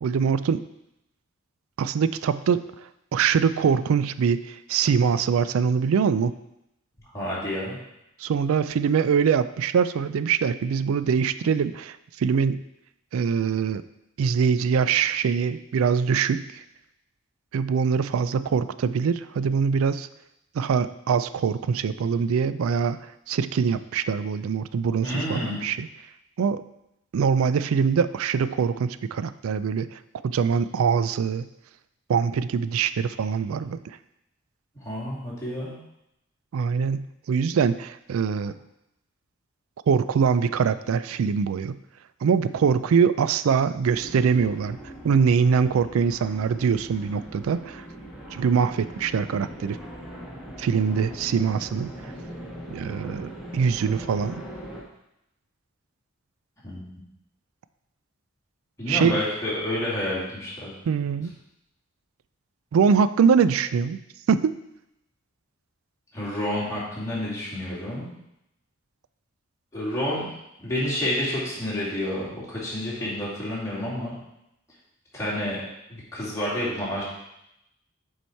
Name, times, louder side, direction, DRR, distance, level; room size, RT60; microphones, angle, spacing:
voice 1, 0.0-0.7 1.8-2.6 3.1-6.3 8.2-12.6 13.1-13.8 14.2-16.4 17.5-20.1 20.5-25.9 26.4-26.6 27.1-31.5 32.1-34.0 36.5-38.6 39.9-41.8 42.2-44.8 45.0-47.8 48.3-49.8 50.6-52.1 52.7-54.4 58.9-59.2 60.9-61.3 62.7-64.0 64.3-64.6, right 6 dB, 80° right, 14 dB, 0.3 m, -23 dB
voice 2, 7.1-7.8 25.0-25.7 34.8-35.8 56.6-57.0 58.8-60.7 66.1-68.1 69.7-70.3 70.6-74.2 75.1-75.6 75.9-77.0, left 1 dB, 15° left, -8 dB, 2.6 m, -29 dB
sound 1, 43.8-54.8, right 1 dB, 5° right, 1.5 m, -40 dB
7.0 x 4.7 x 4.5 m, 0.85 s
head